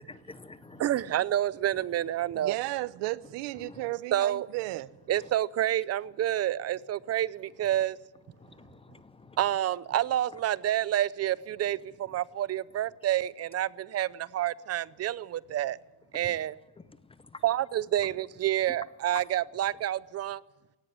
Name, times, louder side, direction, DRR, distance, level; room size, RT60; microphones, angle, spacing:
voice 1, 0.0-0.9 1.7-1.9 3.5-3.9 5.1-5.3 7.7-7.8 8.4-9.4 10.3-10.4 12.1-12.2 16.2-16.4 16.8-17.4 18.0-18.1 18.7-18.8 19.1-19.3, left 3 dB, 15° left, 0.6 m, -48 dB
voice 2, 0.8-2.5 4.1-4.5 5.1-8.0 9.4-15.8 16.1-16.6 17.4-20.4, right 12 dB, 35° right, 0.6 m, -28 dB
voice 3, 2.3-4.9, right 19 dB, 85° right, 0.8 m, -34 dB
18.0 x 16.0 x 9.9 m
cardioid pair, 140°, 42 cm